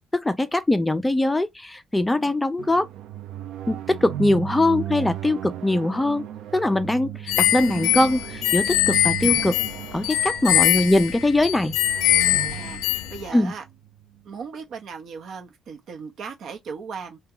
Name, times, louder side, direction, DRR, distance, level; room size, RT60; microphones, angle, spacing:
voice 1, 0.1-2.9 3.7-6.3 6.5-9.6 9.9-11.8 13.3-13.5, left 1 dB, 10° left, 0.3 m, -22 dB
sound 1, 2.6-14.2, right 11 dB, 85° right, 0.4 m, -36 dB
voice 2, 7.1-7.6 10.5-10.9 12.5-13.6 14.2-17.2, right 5 dB, 65° right, 0.8 m, -38 dB
sound 2, 7.3-13.2, left 13 dB, 85° left, 0.3 m, -22 dB
2.8 x 2.2 x 3.6 m
cardioid pair, 105°, 0 cm